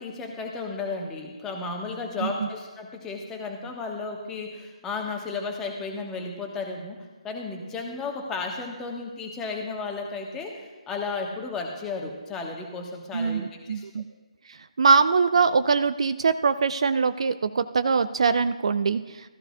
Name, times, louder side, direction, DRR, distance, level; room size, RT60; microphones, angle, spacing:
voice 1, 0.0-7.0 7.2-13.4 13.7-13.9, left 4 dB, 10° left, 2 dB, 1.3 m, -33 dB
voice 2, 13.1-14.0 14.8-19.0, right 5 dB, 55° right, 11 dB, 0.4 m, -22 dB
15.0 x 14.0 x 2.3 m, 1.2 s
figure-of-eight pair, 145°, 4 cm